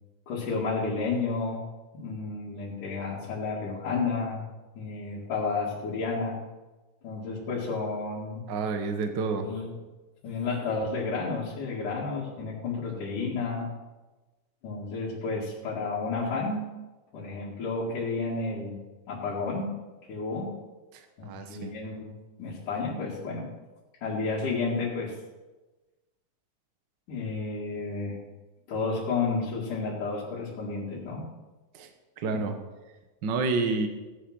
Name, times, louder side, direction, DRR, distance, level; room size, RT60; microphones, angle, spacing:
voice 1, 0.3-1.6 1.9-4.4 4.7-6.4 7.0-8.4 9.4-9.7 10.2-13.7 14.6-16.6 17.1-18.8 19.1-19.7 20.1-20.5 21.2-22.1 22.4-23.5 24.0-25.1 27.1-28.2 28.7-31.3 32.3-32.4, left 4 dB, 70° left, -7 dB, 3.7 m, -31 dB
voice 2, 8.5-9.5 20.9-21.7 31.7-31.9 32.2-32.5 33.2-33.9, right 4 dB, 80° right, 6 dB, 1.0 m, -29 dB
17.0 x 8.6 x 6.1 m, 1.2 s
omnidirectional pair, 3.8 m